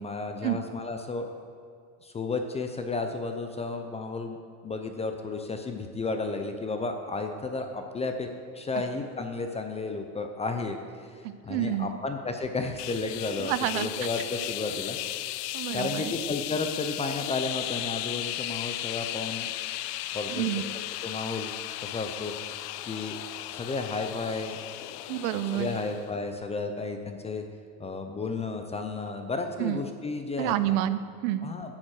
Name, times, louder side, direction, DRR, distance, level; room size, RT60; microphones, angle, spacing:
voice 1, 0.0-1.4 2.0-4.4 4.6-8.3 8.5-19.5 20.1-20.4 20.7-21.5 21.8-23.2 23.5-24.6 25.5-27.4 27.8-30.8 31.4-31.8, left 3 dB, 15° left, 5 dB, 0.4 m, -33 dB
voice 2, 11.2-12.0 13.4-13.9 15.5-16.2 20.3-20.6 25.1-25.7 29.6-29.8 30.4-31.5, right 13 dB, 65° right, 14 dB, 0.6 m, -29 dB
sound 1, 12.8-26.1, left 15 dB, 85° left, 0.5 m, -36 dB
9.6 x 7.3 x 6.2 m, 2.3 s
supercardioid pair, 120°, 46 cm